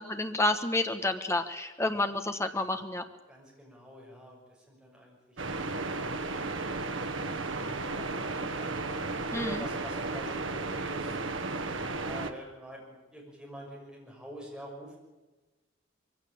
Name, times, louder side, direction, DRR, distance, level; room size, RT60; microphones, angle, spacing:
voice 1, 0.0-3.0 9.3-9.6, left 2 dB, 15° left, 7 dB, 1.3 m, -30 dB
voice 2, 3.3-6.5 7.1-8.7 9.3-11.2 11.9-15.0, equal, 5° right, -2 dB, 6.2 m, -46 dB
sound 1, 5.4-12.3, right 3 dB, 70° right, 1.4 m, -34 dB
22.5 x 16.0 x 8.6 m, 1.1 s
head